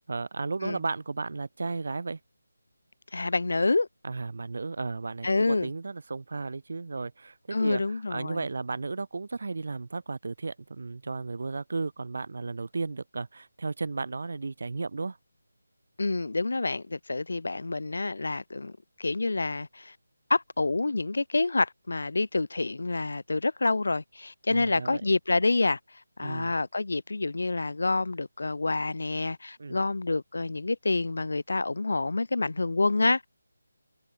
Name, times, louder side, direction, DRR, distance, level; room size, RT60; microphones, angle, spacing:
voice 1, 0.1-2.2 4.0-15.2 24.5-25.0 26.2-26.5 29.6-29.8, right 3 dB, 50° right, 2.4 m, -34 dB
voice 2, 3.1-3.9 5.2-5.7 7.5-8.4 16.0-19.9 20.3-25.8 26.2-33.3, left 3 dB, 65° left, 0.8 m, -27 dB
figure-of-eight pair, 175°, 0 cm